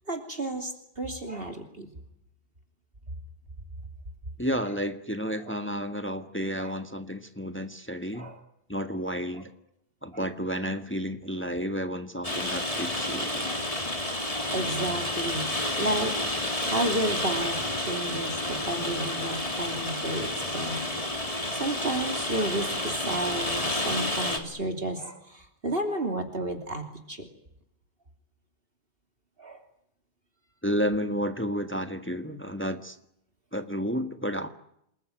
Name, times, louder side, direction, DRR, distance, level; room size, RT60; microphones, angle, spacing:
voice 1, 0.1-1.9 5.4-5.6 6.6-6.8 8.1-8.4 9.3-9.4 10.1-10.3 12.5-12.7 13.5-13.7 14.2-15.5 15.8-16.1 16.6-21.2 21.5-27.2 29.4-29.6, right 1 dB, 50° right, 5 dB, 3.3 m, -32 dB
voice 2, 4.4-8.3 8.7-9.5 10.0-13.5 30.6-33.0 33.5-34.5, equal, 10° left, 8 dB, 1.5 m, -31 dB
Rain, 12.2-24.4, left 1 dB, 30° left, 3.5 m, -30 dB
28.5 x 21.0 x 9.3 m, 0.77 s
omnidirectional pair, 1.2 m